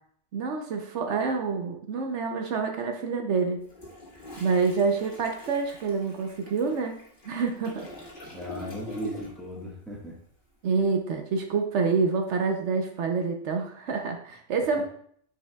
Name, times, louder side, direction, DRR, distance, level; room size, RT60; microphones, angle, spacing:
voice 1, 0.3-3.6 4.4-7.0 7.2-7.9 10.6-14.8, right 4 dB, 70° right, 4 dB, 1.0 m, -27 dB
Toilet flush, 3.6-9.6 9.9-10.1, left 2 dB, 45° left, 1.9 m, -44 dB
voice 2, 8.2-10.2 14.8-14.9, right 1 dB, ahead, -3 dB, 1.3 m, -37 dB
9.1 x 4.9 x 2.2 m, 0.63 s
omnidirectional pair, 1.3 m